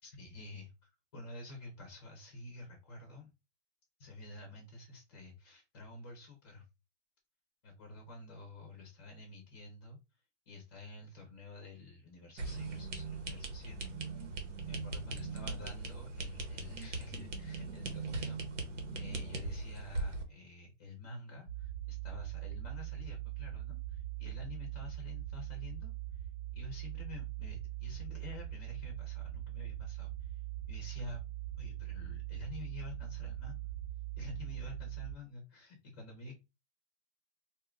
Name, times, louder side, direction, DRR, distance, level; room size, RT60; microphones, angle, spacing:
voice 1, 0.0-3.3 4.0-6.6 7.6-10.0 10.5-13.9 14.7-18.4 18.9-26.3 26.5-31.2 31.6-33.7 34.2-36.4, left 3 dB, 20° left, 2 dB, 0.5 m, -49 dB
sound 1, 12.4-20.2, right 3 dB, 85° right, 1.2 m, -40 dB
sound 2, 21.5-35.1, right 14 dB, 50° right, 1.0 m, -41 dB
2.7 x 2.4 x 3.4 m, 0.26 s
hypercardioid pair, 170°, 36 cm